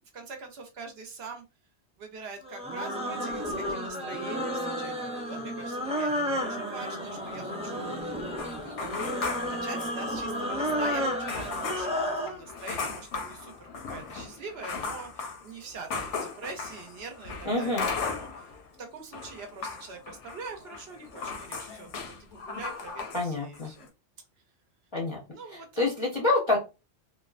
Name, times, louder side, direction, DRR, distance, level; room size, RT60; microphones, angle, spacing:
voice 1, 0.0-1.4 2.0-8.3 8.6-9.2 9.5-18.5 18.8-23.9 25.3-25.8, right 4 dB, 65° right, 4 dB, 0.8 m, -44 dB
sound 1, 2.4-12.4, equal, 10° right, 0.3 m, -32 dB
sound 2, 8.4-10.4 10.7-10.8 11.3-18.7 18.9-23.3 23.5-23.9, left 4 dB, 90° left, 0.9 m, -37 dB
voice 2, 17.5-17.9 23.1-23.7 24.9-25.2 25.8-26.6, left 2 dB, 35° left, -3 dB, 0.5 m, -26 dB
2.7 x 2.2 x 2.4 m, 0.28 s
omnidirectional pair, 1.2 m